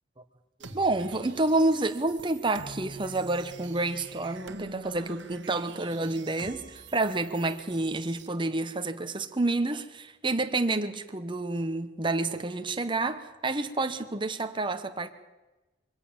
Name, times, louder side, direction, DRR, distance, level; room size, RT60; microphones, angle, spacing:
voice 1, 0.6-15.1, right 2 dB, 25° right, 8 dB, 1.1 m, -29 dB
sound 1, 0.6-8.3, right 3 dB, 70° right, 1.5 m, -46 dB
22.5 x 16.5 x 7.2 m, 1.1 s
head